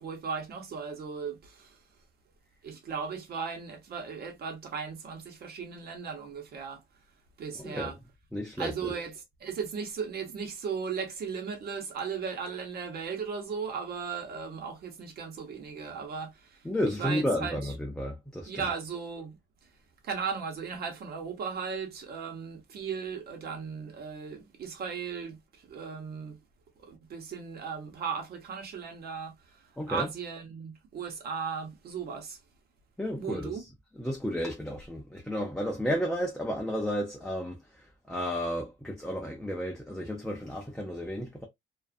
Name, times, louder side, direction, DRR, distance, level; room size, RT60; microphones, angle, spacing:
voice 1, 0.0-1.8 2.6-6.8 7.4-8.0 8.6-16.7 17.0-17.7 18.5-19.4 20.0-26.4 26.8-32.4 33.2-33.6, right 6 dB, 55° right, 0.9 m, -37 dB
voice 2, 7.6-7.9 8.3-8.9 16.6-18.6 29.8-30.1 33.0-33.5 34.0-41.5, equal, 5° left, 0.4 m, -32 dB
2.5 x 2.4 x 2.3 m
cardioid pair, 155°, 19 cm